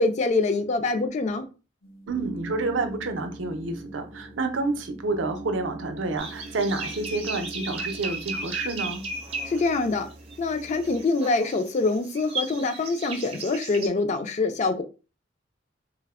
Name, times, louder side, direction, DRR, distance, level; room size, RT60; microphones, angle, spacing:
voice 1, 0.0-1.4 9.4-10.1 10.4-14.8, left 3 dB, 35° left, 0.4 m, -25 dB
sound 1, 1.8-11.0, right 2 dB, 85° left, 0.9 m, -42 dB
voice 2, 2.1-9.0, right 3 dB, 75° right, 0.5 m, -29 dB
sound 2, 6.2-13.9, right 3 dB, 30° right, 0.5 m, -35 dB
3.3 x 2.0 x 2.3 m
head